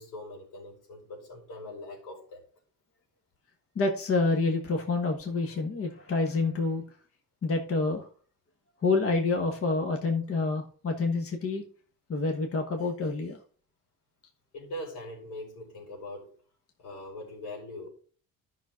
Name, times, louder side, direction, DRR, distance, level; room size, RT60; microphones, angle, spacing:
voice 1, 0.0-2.5 14.5-16.4 16.8-17.9, left 1 dB, 85° left, 4.9 m, -42 dB
voice 2, 3.7-6.8 7.4-8.1 8.8-11.6 12.1-13.4, left 3 dB, 40° left, 1.4 m, -28 dB
11.0 x 6.0 x 3.8 m
cardioid pair, 120°, 37 cm